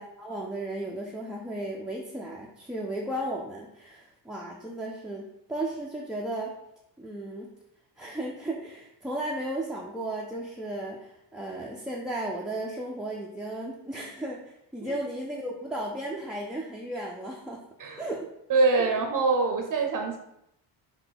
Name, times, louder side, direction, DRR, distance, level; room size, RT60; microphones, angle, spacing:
voice 1, 0.0-6.5 7.0-7.5 8.0-17.6 18.0-18.3 18.8-18.9, right 1 dB, ahead, -4 dB, 0.3 m, -35 dB
voice 2, 18.5-20.2, right 3 dB, 45° right, 4 dB, 0.6 m, -24 dB
5.6 x 2.2 x 3.9 m, 0.80 s
cardioid pair, 110°, 47 cm